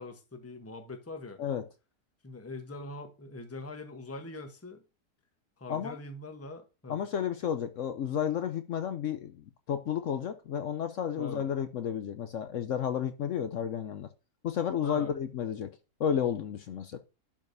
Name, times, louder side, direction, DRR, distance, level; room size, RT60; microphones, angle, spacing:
voice 1, 0.0-1.4 2.2-4.8 5.6-7.0 11.2-11.4 14.8-15.1, left 2 dB, 10° left, 0.8 m, -43 dB
voice 2, 6.9-14.1 14.4-15.7 16.0-17.0, left 8 dB, 65° left, 0.8 m, -32 dB
12.0 x 5.0 x 2.7 m
omnidirectional pair, 1.8 m